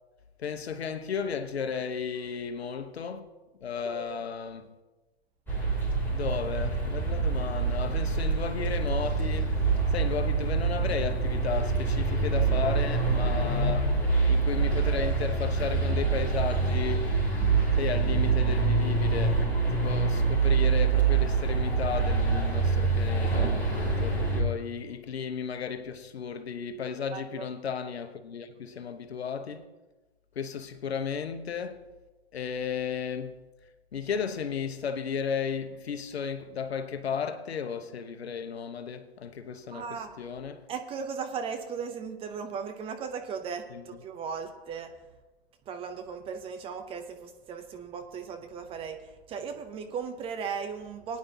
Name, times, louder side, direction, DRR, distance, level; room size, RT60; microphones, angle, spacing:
voice 1, 0.4-3.3 3.6-4.7 6.1-9.6 9.9-14.0 14.3-17.1 17.8-19.4 19.7-23.6 24.0-29.7 30.3-31.8 32.3-33.4 33.9-40.7 43.7-43.8, left 6 dB, 75° left, 1.1 m, -34 dB
voice 2, 3.8-4.3 27.1-27.5 39.7-40.1 40.7-44.9 45.7-51.2, right 6 dB, 15° right, 0.7 m, -37 dB
sound 1, 5.5-24.4, right 4 dB, 5° left, 3.1 m, -26 dB
20.0 x 9.5 x 2.8 m
hypercardioid pair, 120°, 32 cm